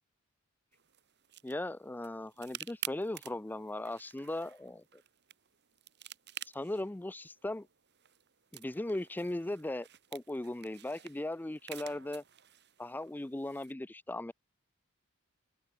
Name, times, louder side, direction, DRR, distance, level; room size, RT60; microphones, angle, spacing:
sound 1, 0.7-13.7, right 11 dB, 55° right, 2.6 m, -50 dB
voice 1, 1.4-4.8 6.5-7.7 8.5-12.2 12.8-14.3, left 1 dB, 10° left, 0.4 m, -38 dB
open air
head